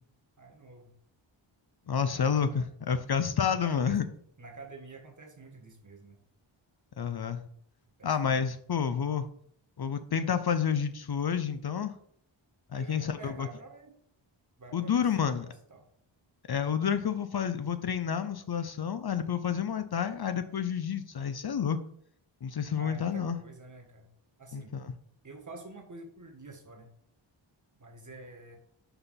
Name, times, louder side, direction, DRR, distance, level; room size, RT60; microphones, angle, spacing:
voice 1, 0.4-0.9 2.1-2.7 3.6-4.0 4.4-6.2 8.0-8.4 12.7-14.0 14.6-15.8 22.8-24.1 24.4-24.8 25.2-26.9 27.8-28.6, right 2 dB, 40° right, 2 dB, 1.5 m, -48 dB
voice 2, 1.9-4.0 7.0-7.4 8.0-9.3 9.8-11.9 12.7-13.5 14.7-15.5 16.5-21.8 22.4-23.4 24.5-24.9, left 7 dB, 55° left, 11 dB, 0.6 m, -29 dB
5.6 x 4.0 x 5.7 m, 0.63 s
wide cardioid pair, 95°, 48 cm